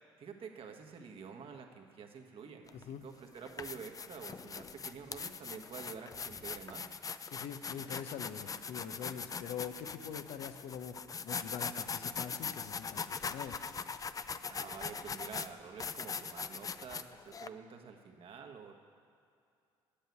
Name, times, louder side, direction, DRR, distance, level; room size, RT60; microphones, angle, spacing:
voice 1, 0.2-6.9 14.5-18.7, right 6 dB, 50° right, 4 dB, 1.6 m, -48 dB
sound 1, 2.7-2.8 3.4-17.5, left 5 dB, 30° left, 0.5 m, -41 dB
voice 2, 7.3-10.9 11.2-13.6, left 8 dB, 65° left, 9 dB, 0.9 m, -44 dB
10.0 x 8.1 x 9.3 m, 2.4 s
hypercardioid pair, 55°, 12 cm